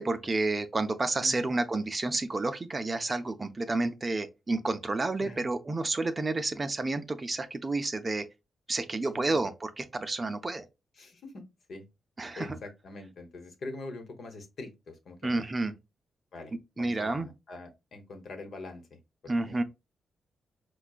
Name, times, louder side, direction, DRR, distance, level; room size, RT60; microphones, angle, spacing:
voice 1, 0.0-8.3 8.7-10.6 12.2-12.6 15.2-15.7 16.8-17.3 19.3-19.6, right 2 dB, 30° right, 0.5 m, -30 dB
voice 2, 1.2-1.5 5.2-5.5 9.1-9.4 11.0-11.9 12.3-15.3 16.3-19.6, left 2 dB, 65° left, 1.0 m, -44 dB
4.7 x 2.3 x 2.4 m
cardioid pair, 85°, 0 cm